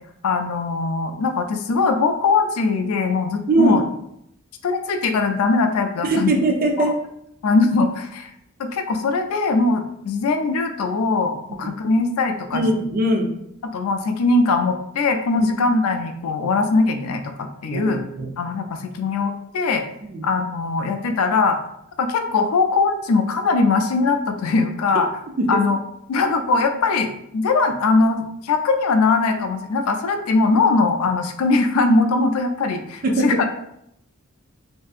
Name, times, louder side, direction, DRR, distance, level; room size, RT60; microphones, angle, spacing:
voice 1, 0.2-3.8 4.6-6.4 6.8-6.9 7.4-8.3 8.6-12.6 13.6-18.0 18.4-19.8 20.2-21.6 22.0-25.1 25.5-25.8 26.1-33.5, left 3 dB, 85° left, 6 dB, 0.4 m, -21 dB
voice 2, 3.5-3.8 6.0-6.9 11.5-11.6 12.5-13.3 15.4-15.5 17.7-18.3 20.1-20.2 25.4-25.6 33.0-33.4, right 2 dB, 45° right, 2 dB, 0.5 m, -21 dB
3.2 x 2.6 x 2.4 m, 0.76 s
head